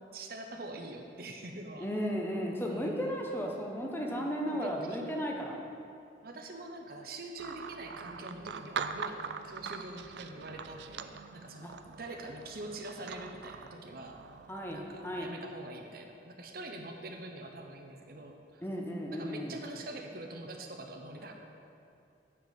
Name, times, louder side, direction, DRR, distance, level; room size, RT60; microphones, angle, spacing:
voice 1, 0.0-1.9 2.7-3.1 4.0-5.0 6.2-9.2 9.4-11.7 12.0-14.2 14.7-18.6 19.1-21.3, right 2 dB, 55° right, 3 dB, 0.9 m, -44 dB
voice 2, 1.8-5.6 11.6-11.7 14.5-15.3 18.6-19.6, equal, 15° left, 0 dB, 0.9 m, -35 dB
sound 1, 7.4-15.3, right 6 dB, 75° right, 0.4 m, -43 dB
9.4 x 4.7 x 7.2 m, 2.6 s
head